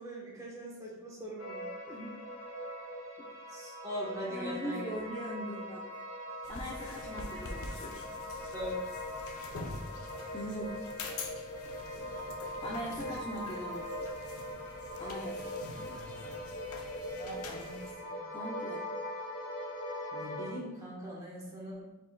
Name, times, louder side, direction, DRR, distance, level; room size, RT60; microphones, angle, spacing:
voice 1, 0.0-1.6 3.5-4.9 8.5-8.9 17.2-18.2 20.1-21.9, equal, 15° right, -5 dB, 1.0 m, -41 dB
sound 1, 1.4-20.5, left 1 dB, 70° left, 1.0 m, -41 dB
voice 2, 1.9-2.2 3.2-3.3 4.3-5.8 6.5-8.0 10.3-10.8 12.6-14.0 15.0-15.5 18.3-18.8, equal, 20° left, -4 dB, 0.4 m, -40 dB
sound 2, 6.4-17.9, left 3 dB, 90° left, 0.5 m, -46 dB
5.1 x 3.8 x 2.2 m, 0.96 s
head